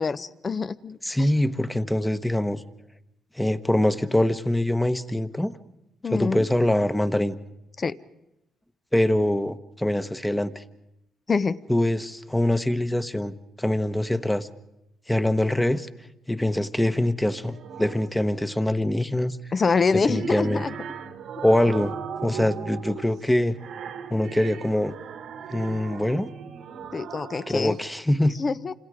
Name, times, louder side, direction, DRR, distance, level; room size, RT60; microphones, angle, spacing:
voice 1, 0.0-1.3 6.0-6.4 7.8-8.0 11.3-11.6 19.5-20.7 26.9-27.8 28.4-28.7, left 4 dB, 35° left, 16 dB, 0.8 m, -25 dB
voice 2, 1.0-2.6 3.4-5.6 6.1-7.4 8.9-10.6 11.7-14.5 15.1-15.9 16.3-19.4 20.1-20.6 21.4-21.9 22.2-23.5 24.1-24.9 25.5-26.3 27.5-28.3, left 1 dB, 5° left, 11 dB, 1.1 m, -24 dB
sound 1, 17.2-18.2 19.7-27.8, right 7 dB, 70° right, 1.4 m, -38 dB
29.0 x 26.5 x 5.0 m, 0.89 s
cardioid pair, 90°, 0 cm